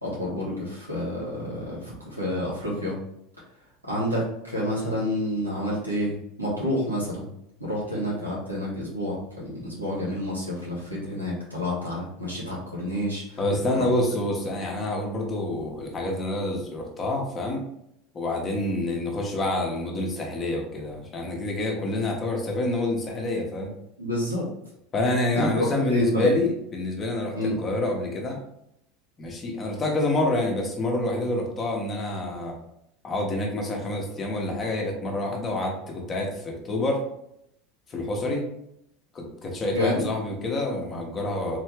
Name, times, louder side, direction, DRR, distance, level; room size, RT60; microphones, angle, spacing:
voice 1, 0.0-3.0 3.9-7.3 7.6-13.4 13.7-13.9 24.0-24.5 25.3-26.3 27.3-27.6 39.7-40.0, left 1 dB, 90° right, -6 dB, 1.4 m, -29 dB
voice 2, 13.4-17.6 18.1-23.7 24.9-28.4 29.2-32.6 33.0-37.0 37.9-38.4 39.1-41.6, left 1 dB, 30° left, 0 dB, 1.0 m, -27 dB
3.7 x 3.2 x 3.3 m, 0.77 s
figure-of-eight pair, 75°, 0 cm